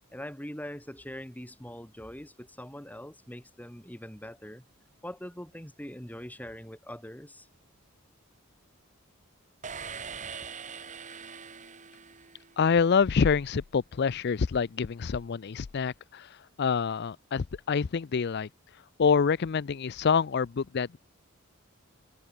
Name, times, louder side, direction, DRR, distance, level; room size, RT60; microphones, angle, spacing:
voice 1, 0.1-4.7 5.0-7.5, equal, 10° left, 3.5 m, -42 dB
sound 1, 9.6-12.8, right 6 dB, 35° right, 1.7 m, -42 dB
voice 2, 12.6-18.5 19.0-21.0, left 6 dB, 50° left, 0.4 m, -26 dB
head